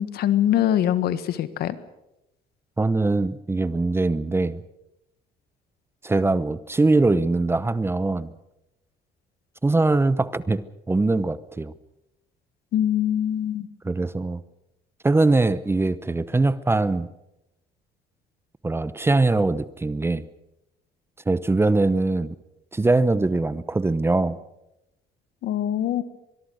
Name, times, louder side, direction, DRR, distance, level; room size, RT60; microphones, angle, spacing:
voice 1, 0.0-1.8 12.7-13.7 25.4-26.0, left 11 dB, 70° left, 13 dB, 1.6 m, -23 dB
voice 2, 2.8-4.6 6.0-8.3 9.6-11.7 13.8-14.4 15.0-17.1 18.6-20.3 21.3-22.4 22.7-24.4, right 2 dB, 15° right, 16 dB, 0.9 m, -22 dB
24.0 x 22.0 x 6.4 m, 0.88 s
cardioid pair, 110°, 17 cm